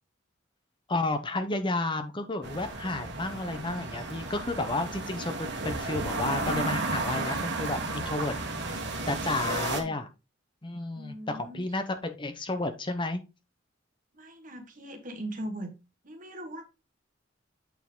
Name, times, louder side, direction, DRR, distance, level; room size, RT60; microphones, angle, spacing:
voice 1, 0.9-8.3 8.6-8.8 9.1-10.1 10.6-13.2, left 2 dB, 25° left, 0.8 m, -31 dB
sound 1, 2.4-9.8, right 2 dB, 60° right, 1.7 m, -33 dB
voice 2, 10.9-11.6 14.1-15.7 16.0-16.6, right 1 dB, 45° right, 1.5 m, -40 dB
8.3 x 4.5 x 3.7 m
head